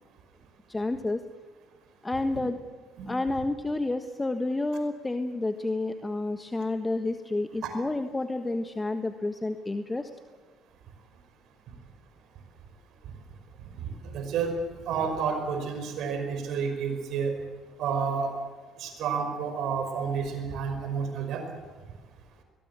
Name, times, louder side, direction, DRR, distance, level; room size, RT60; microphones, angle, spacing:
voice 1, 0.7-1.2 2.0-2.6 3.1-10.1, left 2 dB, 20° left, 8 dB, 1.4 m, -30 dB
voice 2, 14.1-14.5 14.9-17.4 17.8-18.3 18.8-21.4, right 6 dB, 65° right, 6 dB, 5.3 m, -30 dB
22.0 x 21.0 x 8.4 m, 1.3 s
hypercardioid pair, 55°, 0 cm